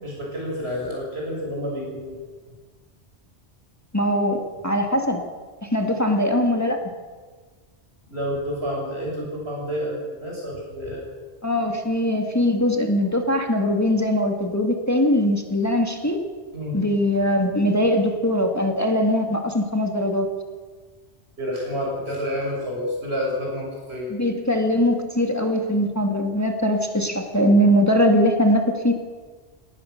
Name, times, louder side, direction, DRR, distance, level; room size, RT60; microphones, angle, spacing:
voice 1, 0.0-2.2 8.1-11.0 16.5-16.8 21.4-24.1, equal, 65° right, -3 dB, 6.7 m, -29 dB
voice 2, 3.9-4.4 4.6-5.2 5.6-6.8 11.4-16.2 16.7-20.3 24.1-28.9, equal, 15° left, 3 dB, 2.0 m, -21 dB
22.0 x 18.5 x 6.6 m, 1.4 s
omnidirectional pair, 1.2 m